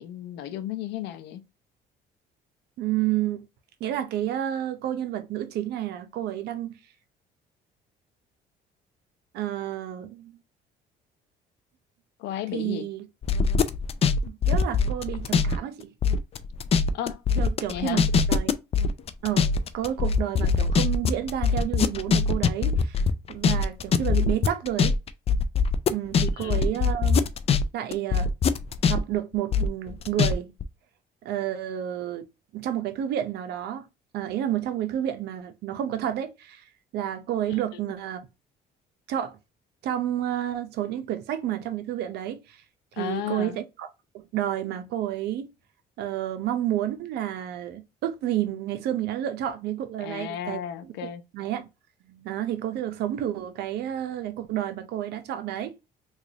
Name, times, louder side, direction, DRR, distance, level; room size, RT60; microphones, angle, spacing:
voice 1, 0.0-1.5 12.2-12.9 16.9-17.2 17.7-18.1 26.2-26.6 37.5-37.8 43.0-43.6 50.0-51.2, left 11 dB, 85° left, 0.5 m, -34 dB
voice 2, 2.8-3.4 3.8-6.8 9.3-10.4 12.5-13.0 14.3-15.9 17.4-18.0 18.3-18.5 19.2-19.5 19.7-23.0 23.3-25.0 25.9-27.3 27.7-28.3 28.9-30.5 31.2-32.3 32.5-33.9 34.1-36.6 36.9-38.2 39.1-39.4 39.8-42.6 42.9-43.9 44.1-45.5 46.0-50.9 51.3-51.7 52.1-55.8, right 11 dB, 75° right, 0.7 m, -30 dB
sound 1, 13.2-15.6 15.8-27.6 27.9-30.3 30.6-30.7, left 5 dB, 35° left, 0.4 m, -22 dB
3.1 x 2.4 x 3.8 m
cardioid pair, 110°, 17 cm